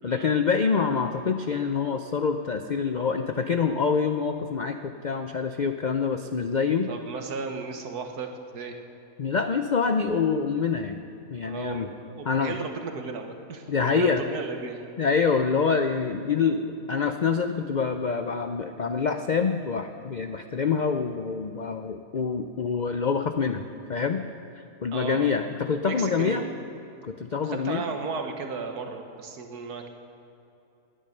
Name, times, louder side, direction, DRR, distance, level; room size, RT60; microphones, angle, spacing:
voice 1, 0.0-6.9 9.2-11.0 11.3-11.9 12.3-12.6 13.7-14.2 15.0-23.6 23.9-24.2 24.6-26.4 27.0-27.8, left 5 dB, 85° left, 7 dB, 0.4 m, -26 dB
voice 2, 6.9-8.7 11.4-14.8 24.9-25.4 25.8-26.6 27.4-29.9, right 4 dB, 90° right, 5 dB, 1.8 m, -35 dB
18.5 x 10.0 x 6.7 m, 2.8 s
omnidirectional pair, 1.6 m